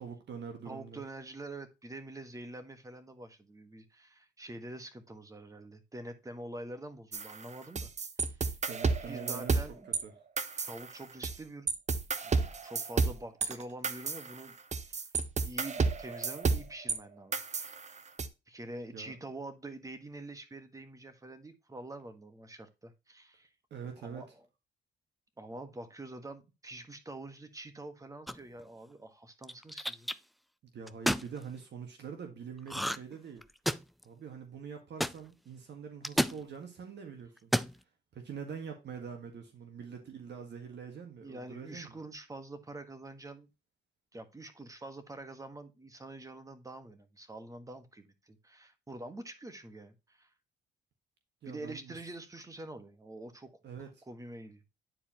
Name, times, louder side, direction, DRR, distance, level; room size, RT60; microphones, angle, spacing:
voice 1, 0.0-1.0 8.7-9.6 10.0-10.1 18.9-19.1 23.7-24.3 30.6-33.4 34.0-37.5 38.1-42.0 51.4-52.0 53.6-53.9, right 6 dB, 60° right, 1.7 m, -44 dB
voice 2, 0.6-7.9 8.2-8.5 9.1-9.9 10.7-11.7 12.2-14.6 14.9-15.1 15.4-17.4 18.5-23.5 24.0-24.4 25.4-30.1 33.7-33.8 41.2-43.5 44.1-50.3 51.4-53.5 54.1-54.6, right 2 dB, 15° right, 1.5 m, -46 dB
sound 1, 7.1-10.0 10.4-11.4 11.7-17.0 17.3-18.3, right 4 dB, 35° right, 1.0 m, -32 dB
sound 2, 28.3-28.6 29.4-30.1 30.9-31.3 32.7-33.1 33.4-34.0 35.0-35.1 36.0-36.4 37.4-37.7, equal, ahead, 0.4 m, -30 dB
9.8 x 4.6 x 3.0 m
cardioid pair, 90°, 20 cm